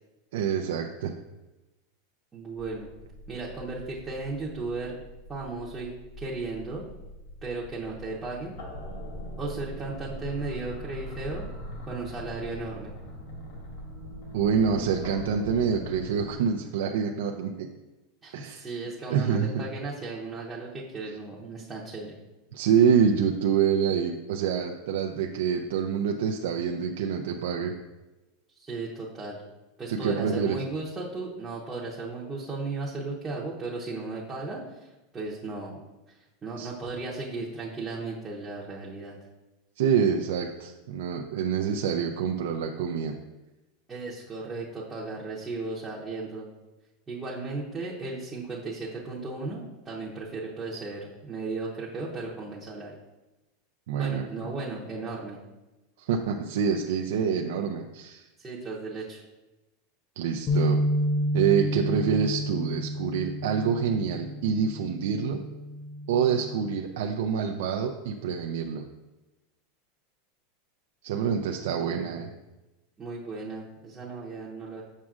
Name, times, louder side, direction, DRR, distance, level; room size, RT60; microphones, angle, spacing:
voice 1, 0.3-1.1 14.3-17.7 18.3-18.7 19.1-19.6 22.5-27.7 29.9-30.6 36.6-36.7 39.8-43.1 53.9-54.3 56.0-58.3 60.2-60.8 61.3-65.4 66.1-68.8 71.0-72.3, right 7 dB, 70° right, 3 dB, 0.4 m, -26 dB
voice 2, 2.3-2.9 3.3-4.9 5.3-5.9 6.2-6.9 7.4-8.6 9.4-11.5 11.9-12.9 18.2-22.2 28.6-29.4 29.8-35.8 36.4-39.1 43.9-46.5 47.1-52.9 53.9-55.4 58.4-59.2 71.9-72.2 73.0-74.8, right 3 dB, 10° right, -6 dB, 0.7 m, -35 dB
sound 1, 2.6-16.3, equal, 60° left, 1.7 m, -41 dB
sound 2, 60.5-66.7, equal, 20° left, 0.4 m, -30 dB
7.3 x 6.2 x 2.4 m, 1.0 s
supercardioid pair, 170°, 0 cm